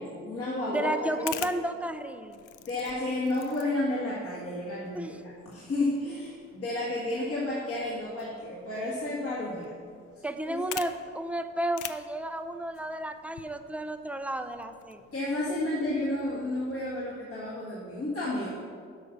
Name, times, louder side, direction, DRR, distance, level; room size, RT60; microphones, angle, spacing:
voice 1, 0.0-1.1 2.6-9.7 10.5-10.8 15.1-18.5, left 1 dB, 50° left, -7 dB, 1.9 m, -31 dB
voice 2, 0.7-2.4 4.9-5.2 10.2-15.0, right 1 dB, 5° right, 9 dB, 0.5 m, -32 dB
sound 1, 1.0-16.7, left 12 dB, 80° left, 0.5 m, -47 dB
8.3 x 5.4 x 5.8 m, 2.2 s
cardioid pair, 90°, 30 cm